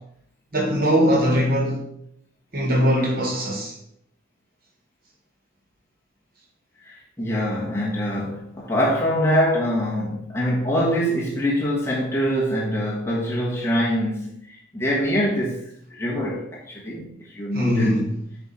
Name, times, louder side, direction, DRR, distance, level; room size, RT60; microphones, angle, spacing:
voice 1, 0.5-1.8 2.5-3.7 17.5-18.1, equal, 50° right, 2.0 m, -21 dB
voice 2, 6.8-15.6 15.9-18.0, equal, 15° left, 1.3 m, -24 dB
7.7 x 3.3 x 4.3 m
head